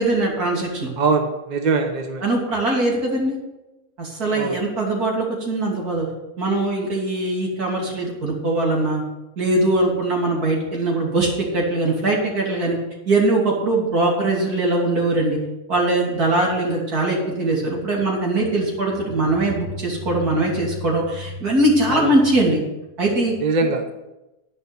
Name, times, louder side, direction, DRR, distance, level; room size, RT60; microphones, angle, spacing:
voice 1, 0.0-0.9 2.2-3.4 4.0-6.1 6.4-9.0 9.4-11.3 11.5-12.8 13.1-15.4 15.7-22.6 23.0-23.3, right 2 dB, 80° right, -2 dB, 3.4 m, -21 dB
voice 2, 1.0-2.2 4.4-4.5 21.9-22.1 23.4-23.9, right 4 dB, 35° right, 4 dB, 1.0 m, -22 dB
11.0 x 5.3 x 8.3 m, 0.99 s
omnidirectional pair, 1.6 m